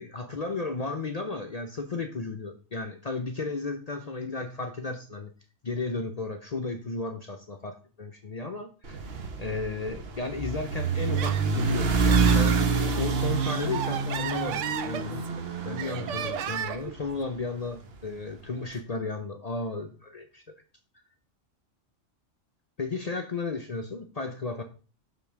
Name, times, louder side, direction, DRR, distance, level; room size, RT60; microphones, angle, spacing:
voice 1, 0.0-5.3 5.6-9.1 9.4-12.7 13.0-15.3 15.6-20.4 22.8-24.6, left 3 dB, 45° left, 6 dB, 0.5 m, -34 dB
sound 1, 8.8-17.2, right 4 dB, 55° right, 1.1 m, -27 dB
Laughter, 11.0-12.7 13.2-15.4 15.8-16.9, right 9 dB, 80° right, 1.0 m, -34 dB
5.3 x 3.8 x 5.8 m, 0.37 s
omnidirectional pair, 1.3 m